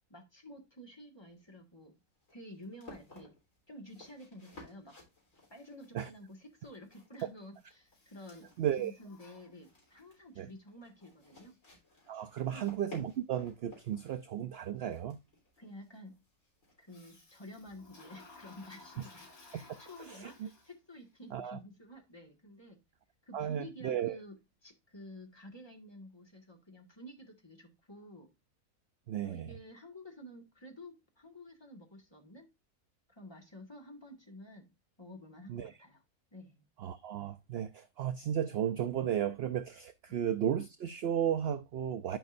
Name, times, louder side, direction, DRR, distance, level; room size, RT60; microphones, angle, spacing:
voice 1, 0.0-2.0 2.3-3.3 3.7-5.0 5.5-8.5 8.8-11.6 12.4-12.7 15.6-16.1 16.8-22.8 23.2-28.3 29.2-32.5 33.1-34.7 35.0-36.0 36.3-36.6 40.1-40.2, left 1 dB, 20° left, 1.7 m, -51 dB
sound 1, 1.3-17.6, left 2 dB, 60° left, 3.9 m, -58 dB
Toilet flush, 7.9-10.1 16.9-21.0, left 3 dB, 85° left, 3.4 m, -57 dB
voice 2, 8.6-8.9 10.4-10.5 12.1-15.2 19.5-19.6 20.1-20.5 21.3-21.6 23.3-24.2 29.1-29.5 35.5-35.7 36.8-42.2, right 10 dB, 65° right, 0.6 m, -34 dB
11.0 x 5.3 x 2.6 m
omnidirectional pair, 1.5 m